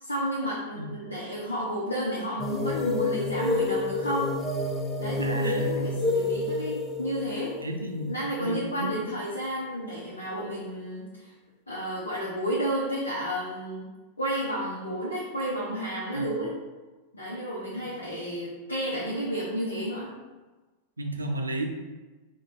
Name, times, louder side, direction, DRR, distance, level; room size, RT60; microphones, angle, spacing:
voice 1, 0.0-4.4 5.0-7.6 8.1-11.3 11.7-13.9 14.2-16.5 17.1-20.1, equal, 75° left, -5 dB, 0.7 m, -31 dB
sound 1, 2.4-8.8, left 3 dB, 25° left, 0.4 m, -29 dB
voice 2, 5.2-5.7 7.6-8.1 8.4-8.9 16.1-16.3 21.0-21.7, right 1 dB, 80° right, 3 dB, 0.5 m, -32 dB
4.2 x 2.3 x 4.2 m, 1.2 s
figure-of-eight pair, 90°, 0 cm